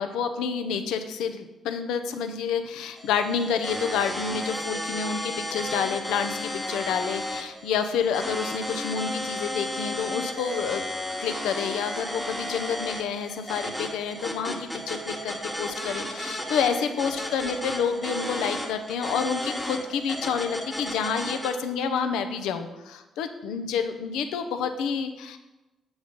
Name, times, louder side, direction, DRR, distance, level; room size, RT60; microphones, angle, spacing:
voice 1, 0.0-10.8 11.2-25.4, left 6 dB, 90° left, 8 dB, 0.5 m, -29 dB
sound 1, 3.0-21.5, left 1 dB, 5° left, 1.1 m, -33 dB
7.1 x 3.9 x 5.1 m, 1.0 s
cardioid pair, 90°, 0 cm